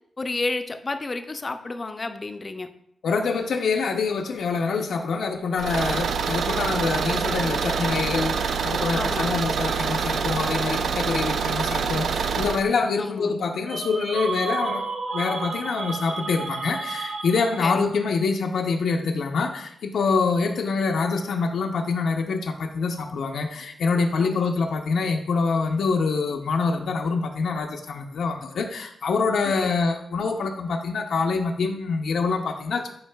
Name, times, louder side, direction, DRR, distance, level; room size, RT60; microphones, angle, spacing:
voice 1, 0.2-2.7 8.9-9.4 13.0-13.3 17.6-17.8 24.2-24.5 29.5-29.7, left 3 dB, 30° left, 7 dB, 0.4 m, -31 dB
voice 2, 3.0-14.8 15.1-32.9, left 4 dB, 75° left, 2 dB, 0.5 m, -25 dB
Car / Engine, 5.6-12.6, right 6 dB, 70° right, 0.3 m, -26 dB
sound 1, 13.7-17.8, right 4 dB, 50° right, 0.7 m, -31 dB
9.4 x 4.6 x 2.2 m, 0.74 s
wide cardioid pair, 140°, 0 cm